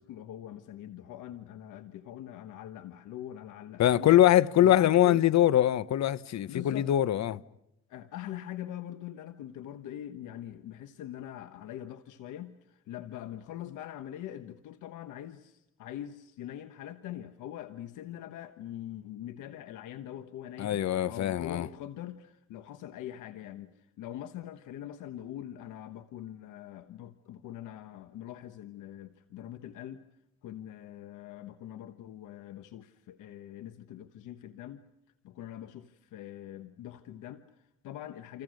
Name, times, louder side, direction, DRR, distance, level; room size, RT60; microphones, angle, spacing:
voice 1, 0.0-4.2 4.6-5.2 6.5-6.9 7.9-30.0 30.4-34.8 35.2-38.4, left 11 dB, 85° left, 1.2 m, -43 dB
voice 2, 3.8-7.4 20.6-21.7, left 12 dB, 65° left, 0.9 m, -23 dB
28.5 x 27.5 x 6.4 m
cardioid pair, 90°, 30 cm